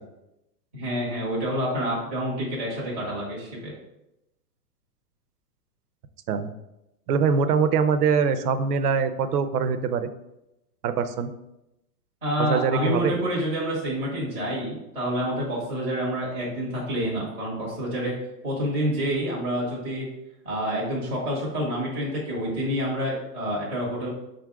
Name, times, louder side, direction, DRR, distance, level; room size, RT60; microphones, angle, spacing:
voice 1, 0.7-3.7 12.2-18.2 18.4-20.1 20.4-24.1, equal, 5° left, -17 dB, 0.4 m, -28 dB
voice 2, 7.1-10.1 10.8-11.3 12.4-13.2, right 6 dB, 70° right, 10 dB, 0.6 m, -23 dB
4.0 x 2.5 x 4.6 m, 0.89 s
hypercardioid pair, 155°, 49 cm